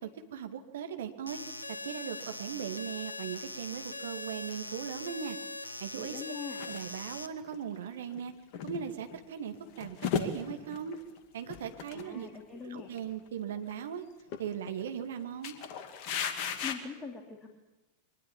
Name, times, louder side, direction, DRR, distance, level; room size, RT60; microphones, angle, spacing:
voice 1, 0.0-1.4 1.8-5.4 5.8-6.2 6.6-8.3 8.6-11.0 11.3-12.3 12.6-14.0 14.4-15.6, right 8 dB, 60° right, 7 dB, 2.3 m, -39 dB
sound 1, 1.3-7.3, left 2 dB, 80° left, 1.3 m, -41 dB
voice 2, 6.0-6.6 11.9-12.9 16.6-17.5, left 6 dB, 20° left, 3 dB, 3.3 m, -42 dB
sound 2, 6.5-6.8 7.5-7.6 8.0-9.2 9.6-11.2 11.5-12.0 12.3-12.4 12.8-13.1 13.5-13.9 14.3-15.1 15.4-16.7, left 7 dB, 45° left, 2.3 m, -36 dB
23.5 x 20.0 x 8.7 m, 1.1 s
figure-of-eight pair, 90°, 0 cm